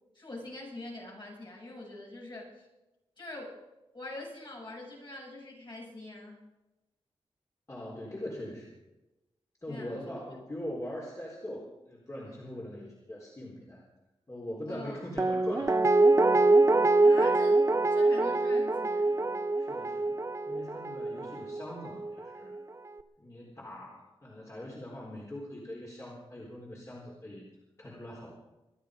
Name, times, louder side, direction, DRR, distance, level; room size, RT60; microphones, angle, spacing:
voice 1, 0.1-2.7 3.2-3.6 3.9-6.5 9.7-10.0 14.7-15.0 17.0-17.6 17.9-19.3, left 2 dB, 50° left, -3 dB, 7.6 m, -44 dB
voice 2, 7.7-8.7 9.6-13.8 14.3-16.0 16.3-16.5 19.6-20.2 20.5-22.6 23.2-27.4 27.8-28.3, left 1 dB, 30° left, -3 dB, 4.0 m, -42 dB
Guitar, 15.2-22.2 22.5-22.6, right 2 dB, 30° right, 0.9 m, -25 dB
25.5 x 11.0 x 5.1 m, 1.0 s
wide cardioid pair, 75°, 10 cm